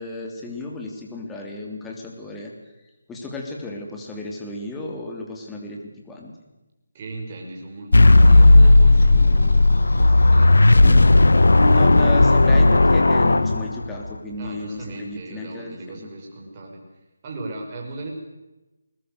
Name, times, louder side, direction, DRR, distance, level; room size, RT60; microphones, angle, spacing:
voice 1, 0.0-2.5 3.1-5.8 6.1-6.3 10.8-11.1 11.6-16.1, left 2 dB, 5° left, 0 dB, 3.1 m, -33 dB
voice 2, 6.9-10.9 14.4-16.8 17.2-18.1, right 2 dB, 25° right, 0 dB, 6.1 m, -37 dB
sound 1, 7.9-14.1, left 2 dB, 85° left, 1.3 m, -13 dB
21.0 x 21.0 x 8.1 m, 1.0 s
figure-of-eight pair, 165°, 0 cm